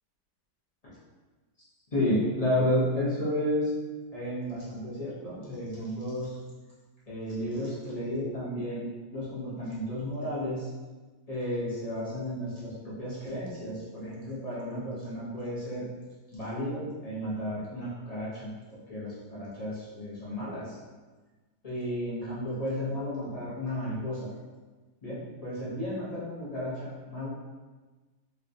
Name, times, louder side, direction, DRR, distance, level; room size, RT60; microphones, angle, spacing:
voice 1, 1.9-3.7 4.1-6.3 7.1-10.7 11.3-15.9 16.3-20.8 21.6-24.3 25.0-27.3, left 1 dB, 40° left, -9 dB, 0.5 m, -32 dB
3.2 x 2.8 x 2.6 m, 1.3 s
omnidirectional pair, 1.8 m